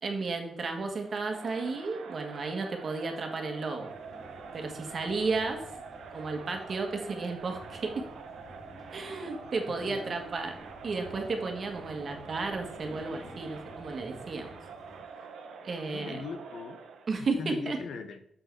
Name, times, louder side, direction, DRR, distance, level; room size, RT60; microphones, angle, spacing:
voice 1, 0.0-3.9 4.5-5.7 6.1-8.0 8.9-10.5 10.8-14.5 15.6-16.2 17.1-17.8, right 3 dB, 45° right, 4 dB, 1.6 m, -33 dB
Crowd, 1.0-17.2, right 5 dB, 80° right, 1.1 m, -46 dB
sound 1, 3.9-15.0, left 1 dB, 30° left, 2.3 m, -52 dB
voice 2, 9.7-10.2 15.9-16.8 17.4-18.2, left 4 dB, 70° left, 9 dB, 0.9 m, -39 dB
6.8 x 6.4 x 4.7 m, 0.77 s
cardioid pair, 115°, 0 cm